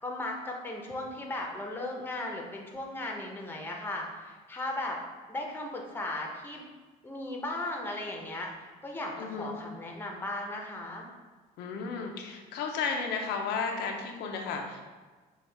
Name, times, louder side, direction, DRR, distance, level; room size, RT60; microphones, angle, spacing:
voice 1, 0.0-5.0 5.3-6.6 7.0-8.5 8.8-11.1, left 1 dB, 10° left, 0 dB, 0.7 m, -36 dB
voice 2, 9.2-9.5 11.6-14.8, left 5 dB, 85° left, 2 dB, 0.6 m, -33 dB
5.5 x 2.3 x 3.3 m, 1.4 s
cardioid pair, 110°, 17 cm